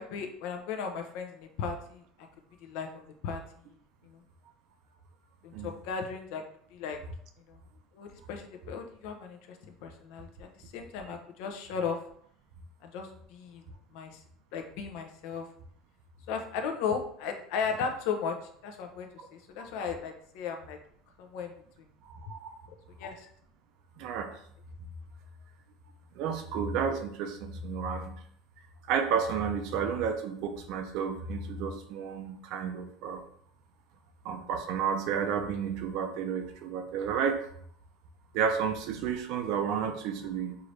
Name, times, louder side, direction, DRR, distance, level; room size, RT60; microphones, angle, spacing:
voice 1, 0.0-2.0 2.6-3.4 4.0-4.2 5.4-6.4 6.7-7.0 7.5-7.6 7.9-9.6 9.8-10.5 10.7-12.0 12.8-13.6 13.9-14.2 14.5-15.5 16.3-18.4 18.6-20.8 21.2-21.5 23.0-23.3, left 6 dB, 70° left, 4 dB, 0.7 m, -36 dB
voice 2, 22.0-22.6 24.0-24.3 26.2-28.2 28.8-33.2 34.2-37.4 38.3-40.6, right 6 dB, 60° right, 6 dB, 0.6 m, -31 dB
4.6 x 2.6 x 3.2 m, 0.65 s
cardioid pair, 150°, 0 cm